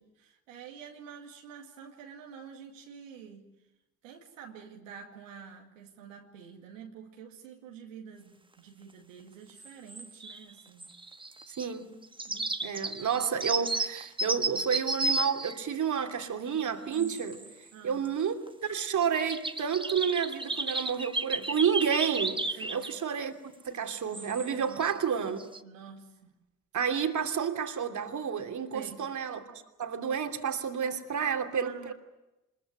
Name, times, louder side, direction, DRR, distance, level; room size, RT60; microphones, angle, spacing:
voice 1, 0.0-3.5 4.0-10.9 12.3-12.8 16.9-17.2 17.7-18.1 22.5-22.9 24.5-24.9 25.6-26.3 28.7-29.0 31.2-31.3 31.5-31.9, right 7 dB, 90° right, 2.3 m, -48 dB
sound 1, 9.6-10.5 10.8-11.7 12.0-16.3 16.9-17.5 17.9-18.1 18.5-18.6 19.0-23.0 23.8-23.9 24.1-25.0 25.3-25.6, right 2 dB, 15° right, 1.4 m, -33 dB
voice 2, 11.5-11.9 12.6-17.4 17.8-23.3 23.6-25.4 26.7-31.9, right 7 dB, 50° right, 2.9 m, -30 dB
26.0 x 21.5 x 9.2 m
hypercardioid pair, 50°, 38 cm